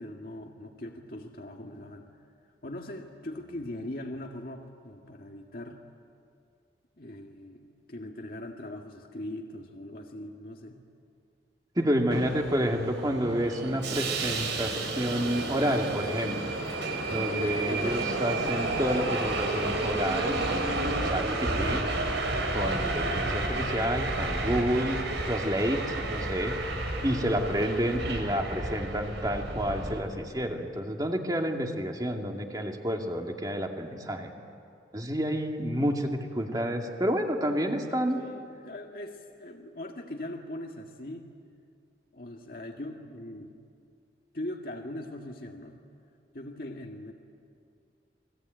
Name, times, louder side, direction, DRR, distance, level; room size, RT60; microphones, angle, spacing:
voice 1, 0.0-2.1 2.6-5.8 7.0-10.8 27.0-27.3 38.1-41.3 42.1-43.5 44.3-45.9 46.3-47.1, left 1 dB, 50° left, 1 dB, 1.8 m, -41 dB
voice 2, 11.8-16.5 17.1-21.9 22.5-26.6 27.0-34.3 34.9-38.2, equal, 20° right, 2 dB, 2.3 m, -29 dB
Subway metro underground, 12.1-30.0, right 2 dB, 80° right, 4.5 m, -31 dB
30.0 x 21.5 x 9.1 m, 2.4 s
head